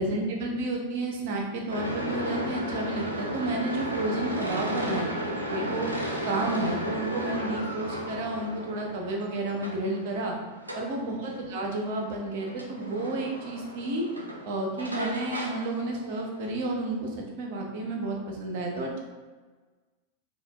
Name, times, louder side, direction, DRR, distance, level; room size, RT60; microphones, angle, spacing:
voice 1, 0.0-5.2 5.5-5.9 6.2-10.3 10.7-14.0 14.4-19.0, right 2 dB, 50° right, 0 dB, 0.8 m, -31 dB
sound 1, 1.7-16.5, equal, 80° right, 0.5 m, -35 dB
5.2 x 2.4 x 2.3 m, 1.3 s
figure-of-eight pair, 90°, 0 cm